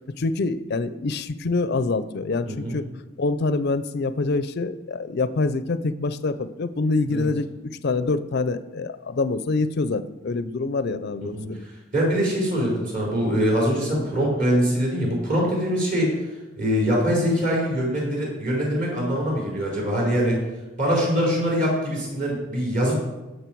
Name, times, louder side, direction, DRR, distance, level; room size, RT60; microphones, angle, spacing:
voice 1, 0.2-2.8 3.2-11.7, left 3 dB, 55° left, 13 dB, 0.5 m, -25 dB
voice 2, 2.4-2.8 7.1-7.3 11.2-11.5 11.9-16.3 16.6-20.4 20.8-23.0, equal, 40° right, -4 dB, 4.3 m, -23 dB
16.0 x 6.4 x 4.6 m, 1.1 s
head